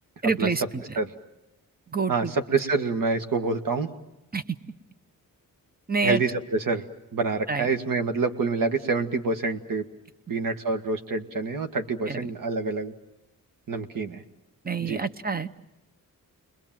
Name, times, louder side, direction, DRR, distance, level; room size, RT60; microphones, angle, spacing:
voice 1, 0.2-0.8 1.9-2.3 4.3-4.4 5.9-6.2 7.5-7.7 12.1-12.3 14.6-15.5, right 4 dB, 25° right, 11 dB, 0.9 m, -27 dB
voice 2, 2.1-3.9 6.0-6.8 7.1-9.9 10.3-12.9 13.7-14.2 14.8-15.0, right 4 dB, 70° right, 6 dB, 1.8 m, -27 dB
30.0 x 21.5 x 7.5 m, 0.90 s
wide cardioid pair, 110°, 34 cm